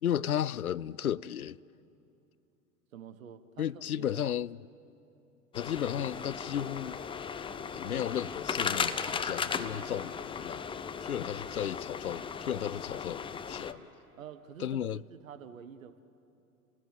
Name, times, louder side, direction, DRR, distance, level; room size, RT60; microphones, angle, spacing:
voice 1, 0.0-1.6 3.6-4.6 5.5-7.0 7.7-10.7 11.0-13.8 14.6-15.0, left 10 dB, 75° left, 0.6 m, -34 dB
voice 2, 2.9-4.3 14.1-16.0, right 8 dB, 65° right, 1.4 m, -48 dB
sound 1, 5.5-13.7, left 6 dB, 10° left, 0.8 m, -36 dB
29.5 x 19.0 x 9.0 m
figure-of-eight pair, 90°, 44 cm